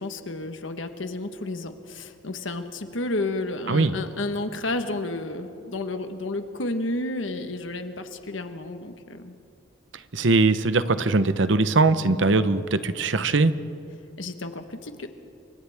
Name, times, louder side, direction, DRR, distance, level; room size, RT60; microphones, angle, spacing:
voice 1, 0.0-9.3 14.2-15.1, left 2 dB, 90° left, 7 dB, 1.3 m, -31 dB
voice 2, 10.1-13.5, right 3 dB, 80° right, 12 dB, 0.9 m, -21 dB
30.0 x 24.5 x 3.6 m, 2.6 s
head